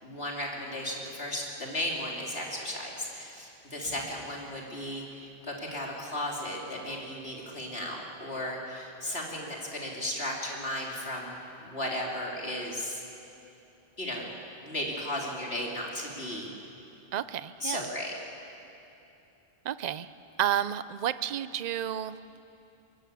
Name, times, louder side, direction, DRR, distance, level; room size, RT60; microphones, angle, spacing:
voice 1, 0.0-13.0 14.0-14.3 14.6-16.5 17.6-18.1, left 1 dB, 70° left, -2 dB, 3.8 m, -35 dB
voice 2, 17.1-17.9 19.6-20.1 20.4-22.2, right 10 dB, 45° right, 14 dB, 0.7 m, -31 dB
23.5 x 21.5 x 8.5 m, 2.9 s
omnidirectional pair, 1.1 m